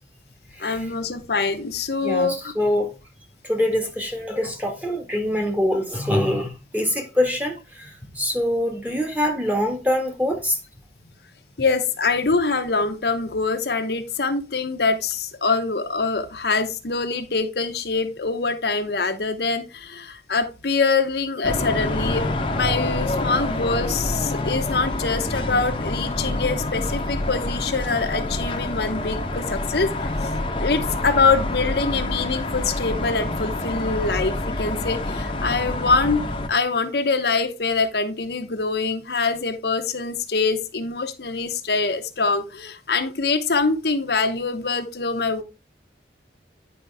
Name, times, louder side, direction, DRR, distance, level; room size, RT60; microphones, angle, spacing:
voice 1, 0.6-2.5 11.6-22.3 22.5-30.1 30.6-36.2 36.5-45.4, left 4 dB, 65° left, 0.9 m, -24 dB
voice 2, 2.5-2.9 3.4-10.6, left 1 dB, 10° right, 1.6 m, -24 dB
sound 1, 21.4-36.5, left 2 dB, 30° left, 0.9 m, -27 dB
9.7 x 5.2 x 3.4 m
head